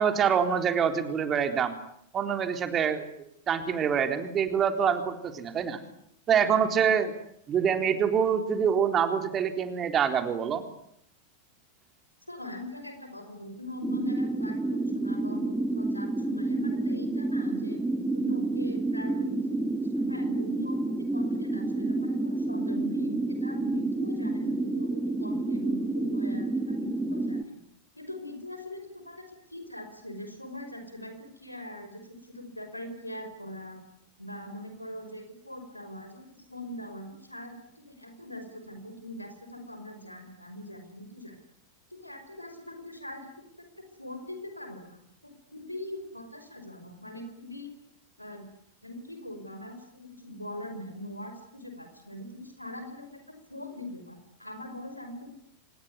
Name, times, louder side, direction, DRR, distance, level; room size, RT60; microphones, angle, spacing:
voice 1, 0.0-1.7 2.1-3.0 3.5-5.8 6.3-7.1 7.5-10.6, right 7 dB, 25° right, 7 dB, 3.9 m, -25 dB
voice 2, 12.3-17.8 18.1-27.6 27.9-33.8 34.2-41.4 41.9-47.7 48.2-48.5 48.8-55.3, left 1 dB, 85° left, 7 dB, 5.5 m, -42 dB
Dark-Wind, 13.8-27.4, right 2 dB, 5° right, 1.7 m, -29 dB
26.5 x 20.5 x 9.8 m, 0.71 s
figure-of-eight pair, 90°, 0 cm